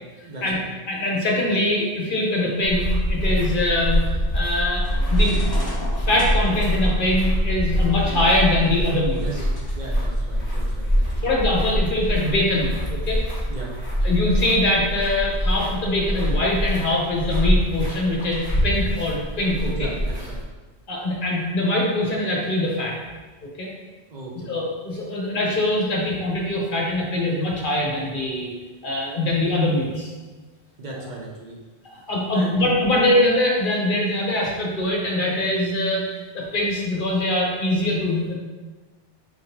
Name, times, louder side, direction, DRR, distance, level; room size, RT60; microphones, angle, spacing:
voice 1, 0.2-0.7 9.1-9.4 9.7-11.3 13.5-13.7 19.7-20.4 24.1-24.5 30.8-31.6 32.3-32.6, right 2 dB, 50° right, -2 dB, 0.7 m, -36 dB
voice 2, 0.9-4.0 4.3-5.4 6.0-9.2 11.2-13.2 14.0-19.9 20.9-23.0 23.6-23.7 24.5-28.5 28.8-30.1 31.9-36.0 36.3-38.3, left 1 dB, 50° left, -2 dB, 1.0 m, -23 dB
sound 1, 2.6-20.4, equal, 5° right, 1.5 m, -24 dB
sound 2, 4.8-9.8, left 1 dB, 25° left, 0.8 m, -38 dB
4.8 x 3.5 x 2.9 m, 1.3 s
omnidirectional pair, 1.1 m